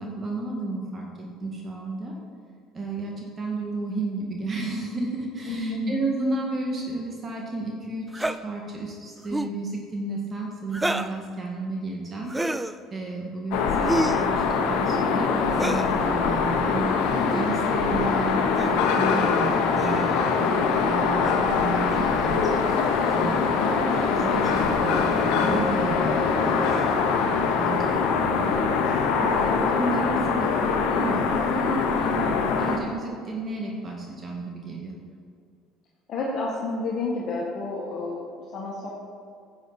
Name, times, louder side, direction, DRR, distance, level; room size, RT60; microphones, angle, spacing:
voice 1, 0.0-2.2 2.7-12.4 12.9-17.0 17.3-22.6 23.1-23.4 24.1-27.0 27.6-28.7 29.2-35.0, right 2 dB, 35° right, -1 dB, 1.8 m, -32 dB
voice 2, 5.5-6.0 23.6-23.9 36.1-38.9, left 2 dB, 50° left, -4 dB, 1.7 m, -30 dB
sound 1, 8.1-8.4 9.2-9.6 10.7-11.2 12.3-12.8 13.8-14.3 15.5-15.9 17.2-17.5 18.6-18.8 19.7-20.2 21.9-22.0 23.1-23.2 23.9-24.1 24.9-25.1 26.6-27.0, right 1 dB, 10° right, 0.5 m, -29 dB
sound 2, 13.5-32.8, left 5 dB, 75° left, 1.0 m, -23 dB
10.0 x 8.4 x 4.1 m, 2.2 s
supercardioid pair, 80°, 0 cm